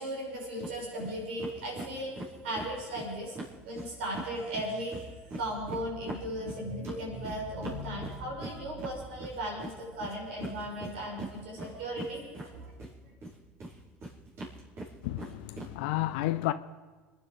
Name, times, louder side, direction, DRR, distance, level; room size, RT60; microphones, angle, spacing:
voice 1, 0.0-2.1 2.4-3.4 3.6-5.0 5.3-12.7 13.0-13.1, right 1 dB, 85° right, 6.5 m, -37 dB
sound 1, 0.6-0.7 1.0-1.1 1.4-4.3 4.5-12.9 13.2-15.7, right 2 dB, 50° right, 5.3 m, -41 dB
voice 2, 15.0-16.5, left 16 dB, 75° left, 0.5 m, -31 dB
27.0 x 10.0 x 5.2 m
hypercardioid pair, 80°, 6 cm